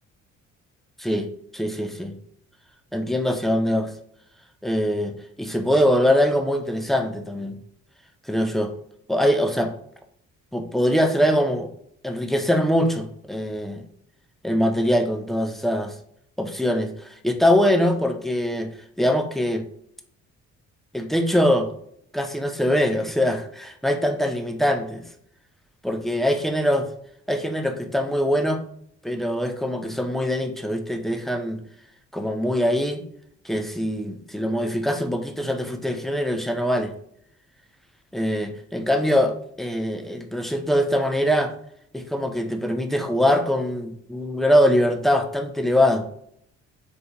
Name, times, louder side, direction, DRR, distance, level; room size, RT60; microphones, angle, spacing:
voice 1, 1.5-2.1 2.9-3.9 4.6-7.6 8.3-8.7 9.1-9.7 10.5-11.7 12.0-13.8 14.4-15.9 16.4-18.7 19.0-19.7 20.9-21.7 22.1-25.0 25.8-26.9 27.3-28.6 29.0-31.6 32.1-33.0 33.4-36.9 38.1-41.5 41.9-46.1, equal, ahead, 5 dB, 0.4 m, -23 dB
3.5 x 2.5 x 2.8 m, 0.68 s
cardioid pair, 90°, 30 cm